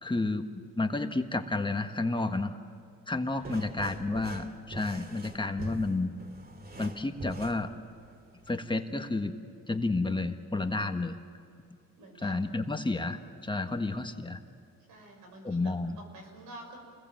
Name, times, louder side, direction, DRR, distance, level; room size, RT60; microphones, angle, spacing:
voice 1, 0.0-2.6 3.1-6.1 6.8-7.7 8.5-9.3 9.7-11.2 12.2-14.4 15.4-16.0, left 2 dB, 15° left, 6 dB, 1.5 m, -31 dB
sound 1, 3.3-8.5, right 1 dB, 30° right, 2.5 m, -43 dB
voice 2, 3.4-3.9 12.0-12.3 14.9-16.8, right 1 dB, 90° right, 3 dB, 6.4 m, -49 dB
28.5 x 21.5 x 7.7 m, 2.3 s
cardioid pair, 90°, 30 cm